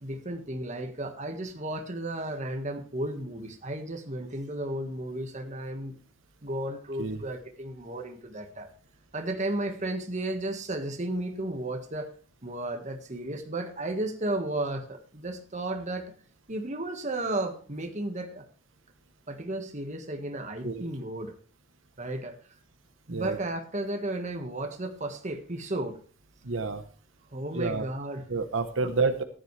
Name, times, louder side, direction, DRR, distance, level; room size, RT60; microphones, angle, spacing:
voice 1, 0.0-6.0 6.4-8.7 9.1-12.1 12.4-16.1 16.5-18.4 19.3-21.3 22.0-22.4 23.1-26.0 27.3-28.2, right 1 dB, 40° right, 5 dB, 1.6 m, -33 dB
voice 2, 26.4-26.8 27.5-27.9 28.3-29.2, right 4 dB, 80° right, 8 dB, 1.0 m, -29 dB
14.5 x 10.0 x 3.3 m, 0.42 s
head